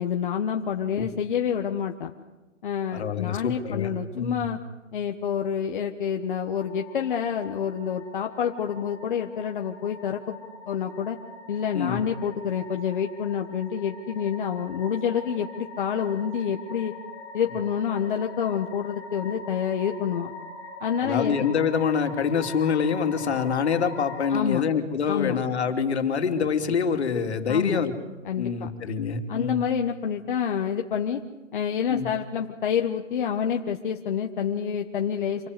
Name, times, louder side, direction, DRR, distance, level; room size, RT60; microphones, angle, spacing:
voice 1, 0.0-2.1 2.6-4.6 4.9-11.2 11.5-17.0 17.3-20.3 20.8-21.4 24.3-24.6 25.1-25.4 27.5-27.8 28.2-28.7 29.3-31.2 31.5-35.5, left 8 dB, 40° left, 3 dB, 1.4 m, -28 dB
voice 2, 2.9-4.4 11.7-12.0 21.0-27.9 28.4-29.6 31.9-32.1, left 6 dB, 60° left, 5 dB, 3.1 m, -26 dB
sound 1, 6.5-24.4, left 3 dB, 10° left, 5.5 m, -42 dB
27.0 x 21.5 x 8.3 m, 1.1 s
hypercardioid pair, 165°, 37 cm